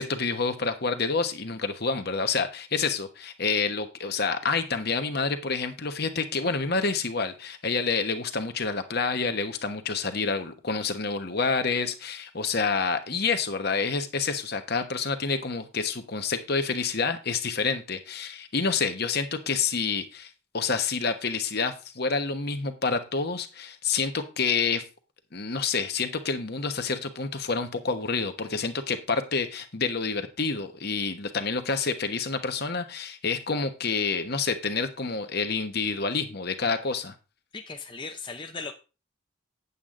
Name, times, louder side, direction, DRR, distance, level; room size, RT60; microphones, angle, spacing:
voice 1, 0.0-24.8 25.3-37.1, left 4 dB, 55° left, 1.2 m, -28 dB
voice 2, 37.5-38.7, left 4 dB, 25° left, 0.7 m, -37 dB
8.9 x 8.4 x 3.8 m
head